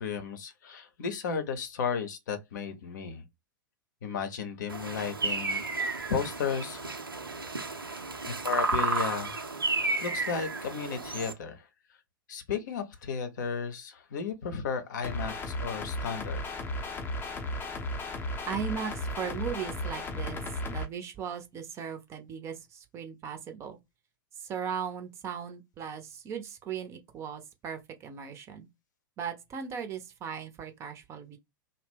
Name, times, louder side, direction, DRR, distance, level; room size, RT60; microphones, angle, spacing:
voice 1, 0.0-3.3 4.0-6.9 8.2-9.4 10.0-11.7 12.3-16.4, left 6 dB, 55° left, 0.7 m, -34 dB
sound 1, 4.7-11.3, right 3 dB, 85° right, 0.6 m, -32 dB
sound 2, 15.0-20.8, left 1 dB, 20° left, 0.6 m, -35 dB
voice 2, 18.5-20.4 20.7-23.8 24.4-28.7 29.2-31.4, right 7 dB, 25° right, 0.6 m, -38 dB
2.7 x 2.0 x 3.4 m
figure-of-eight pair, 100°, 11 cm